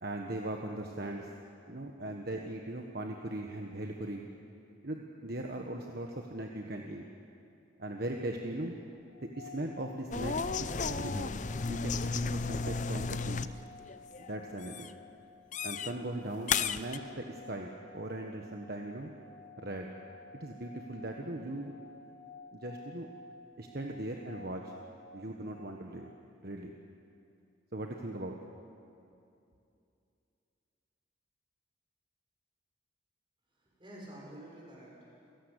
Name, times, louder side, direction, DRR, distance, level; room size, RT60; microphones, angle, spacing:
voice 1, 0.0-1.3 1.7-4.3 4.8-7.0 7.8-8.7 9.2-11.4 11.7-13.5 14.2-14.9 15.6-19.1 19.6-19.9 20.4-21.8 22.5-23.1 23.6-24.7 25.1-26.1 26.4-26.7 27.7-28.4, right 1 dB, 50° right, 2 dB, 1.4 m, -39 dB
sound 1, 9.1-26.2, left 2 dB, 70° left, 1.5 m, -53 dB
sound 2, 10.1-13.6 13.9-14.3 14.6-14.9 15.5-15.9 16.5-17.0, left 5 dB, 40° left, 0.6 m, -33 dB
voice 2, 33.5-35.3, right 1 dB, 25° right, -3 dB, 6.4 m, -50 dB
28.5 x 17.5 x 8.3 m, 2.6 s
head